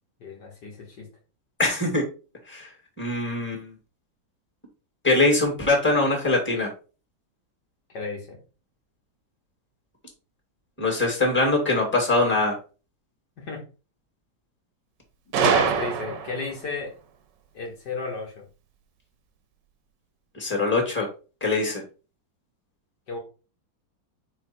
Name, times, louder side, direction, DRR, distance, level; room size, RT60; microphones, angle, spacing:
voice 1, 0.2-1.1 7.9-8.4 13.4-13.6 15.3-16.9 17.5-18.5 23.1-23.2, left 4 dB, 60° left, 0 dB, 2.1 m, -33 dB
voice 2, 1.6-2.0 2.5-2.7 3.0-3.7 5.0-6.7 10.8-12.6 20.4-21.1 21.4-21.8, left 2 dB, 5° left, 1 dB, 2.2 m, -22 dB
Gunshot gunfire, 15.3-16.6, right 7 dB, 70° right, 1.5 m, -23 dB
5.8 x 4.6 x 4.4 m, 0.34 s
omnidirectional pair, 2.1 m